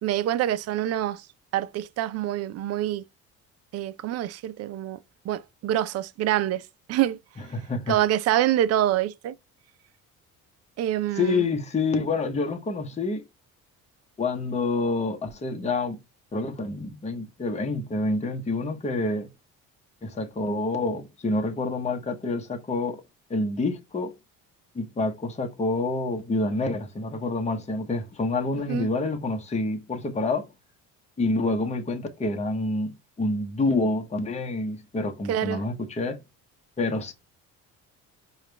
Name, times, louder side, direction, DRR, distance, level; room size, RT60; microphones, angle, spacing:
voice 1, 0.0-1.3 1.5-3.0 3.7-5.0 5.2-7.2 7.9-9.4 10.8-11.4 28.7-28.9 35.3-35.6, right 12 dB, 50° right, 0.5 m, -26 dB
voice 2, 7.5-8.0 11.1-13.3 14.2-16.0 16.3-19.3 20.0-23.0 23.3-24.1 24.7-30.5 31.2-36.2 36.8-37.1, left 2 dB, 20° left, 0.9 m, -27 dB
4.9 x 2.4 x 3.3 m
cardioid pair, 95°, 32 cm